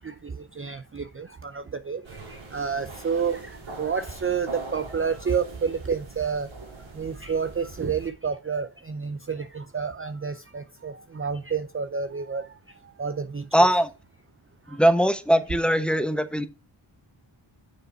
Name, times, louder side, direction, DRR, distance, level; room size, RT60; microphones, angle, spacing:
voice 1, 0.6-2.0 2.5-3.4 3.8-6.5 7.0-12.4 13.0-13.7, right 6 dB, 25° right, 0.6 m, -29 dB
sound 1, 2.0-8.1, right 3 dB, 70° right, 3.3 m, -42 dB
voice 2, 13.5-13.9 14.7-16.5, equal, ahead, 1.0 m, -21 dB
6.9 x 6.7 x 4.4 m
wide cardioid pair, 80°, 48 cm